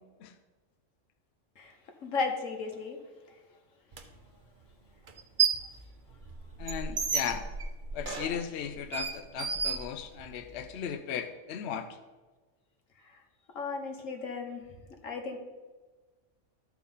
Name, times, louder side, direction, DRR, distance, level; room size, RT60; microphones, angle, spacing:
voice 1, 2.0-3.0 13.1-13.2 13.5-14.7 15.0-15.4, left 4 dB, 85° left, 3 dB, 1.6 m, -34 dB
sound 1, 3.9-4.0 5.1-5.7 6.1-10.5, right 6 dB, 45° right, 0.9 m, -32 dB
voice 2, 6.6-7.4 7.9-11.9, left 8 dB, 65° left, 8 dB, 0.8 m, -36 dB
12.5 x 4.6 x 5.5 m, 1.3 s
omnidirectional pair, 1.3 m